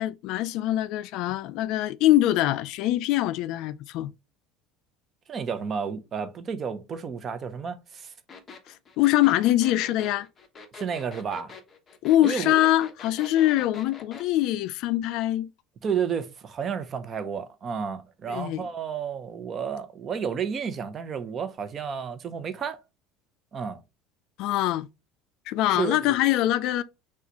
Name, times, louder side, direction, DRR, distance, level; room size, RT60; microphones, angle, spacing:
voice 1, 0.0-4.1 9.0-10.3 12.0-15.5 18.3-18.7 24.4-24.9 25.5-26.8, left 14 dB, 60° left, 0.3 m, -23 dB
voice 2, 5.3-8.1 10.7-11.5 12.2-12.5 15.8-22.8 23.5-23.8 25.7-26.0, right 7 dB, 30° right, 0.7 m, -31 dB
sound 1, 8.3-14.3, left 5 dB, 25° left, 0.9 m, -44 dB
5.8 x 2.4 x 2.9 m
cardioid pair, 135°, 0 cm